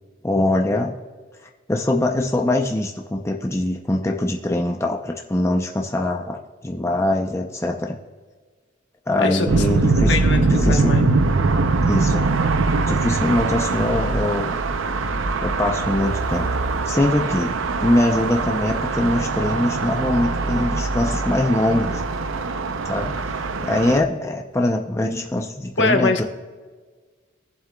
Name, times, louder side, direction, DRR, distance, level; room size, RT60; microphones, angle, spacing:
voice 1, 0.2-1.0 1.7-8.0 9.1-11.1 11.8-12.3 12.9-14.5 15.4-16.6 16.9-22.0 22.9-26.2, left 1 dB, 15° left, 1 dB, 0.6 m, -23 dB
voice 2, 9.2-9.5 10.1-11.0 25.8-26.2, left 3 dB, 60° left, 4 dB, 1.2 m, -22 dB
sound 1, 9.5-24.0, right 3 dB, 80° right, 0.6 m, -22 dB
22.0 x 7.5 x 2.3 m, 1.4 s
head